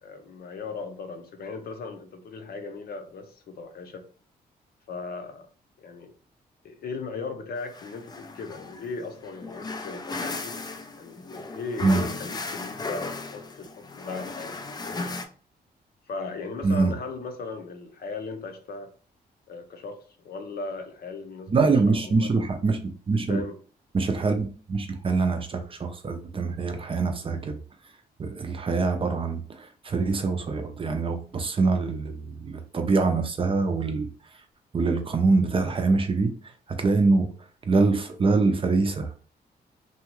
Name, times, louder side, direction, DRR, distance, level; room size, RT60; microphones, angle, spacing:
voice 1, 0.0-4.0 4.9-5.5 5.8-6.1 6.6-10.6 11.0-14.6 14.8-15.2 16.1-18.9 19.5-22.3 23.3-23.6, left 4 dB, 65° left, 0.6 m, -37 dB
sound 1, 7.6-15.2, left 3 dB, 25° left, 0.4 m, -36 dB
voice 2, 16.6-16.9 21.5-22.8 23.1-23.4 23.9-27.5 28.2-29.4 29.8-34.1 34.7-36.3 36.8-37.3 37.7-39.1, right 3 dB, 35° right, 0.5 m, -24 dB
2.7 x 2.3 x 3.0 m
cardioid pair, 100°, 17 cm